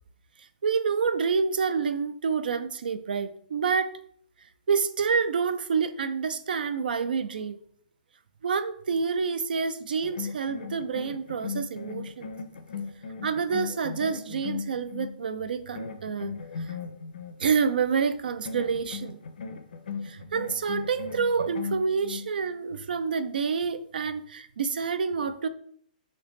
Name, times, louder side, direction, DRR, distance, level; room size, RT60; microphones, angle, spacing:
voice 1, 0.6-3.9 4.7-7.6 8.4-12.4 13.2-16.8 17.4-19.2 20.0-25.5, right 5 dB, 85° right, 12 dB, 0.3 m, -28 dB
sound 1, 10.0-15.2 15.7-17.3 18.4-22.3, left 5 dB, 75° left, 0.4 m, -37 dB
3.3 x 2.8 x 3.0 m, 0.64 s
hypercardioid pair, 165°, 5 cm